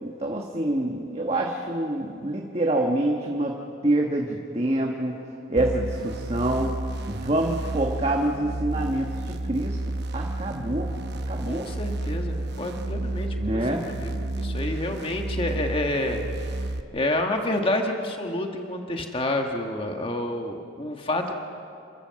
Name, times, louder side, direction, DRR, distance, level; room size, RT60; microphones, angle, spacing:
voice 1, 0.0-3.5 3.8-5.1 5.5-6.7 7.1-9.8 10.1-10.9 11.3-11.6 13.4-13.8, right 1 dB, 30° right, 0 dB, 1.4 m, -26 dB
sound 1, 5.6-16.8, right 1 dB, 55° right, 0.9 m, -31 dB
voice 2, 11.4-16.2 16.9-21.3, left 1 dB, 25° left, 3 dB, 1.5 m, -29 dB
29.0 x 13.5 x 7.6 m, 2.6 s
head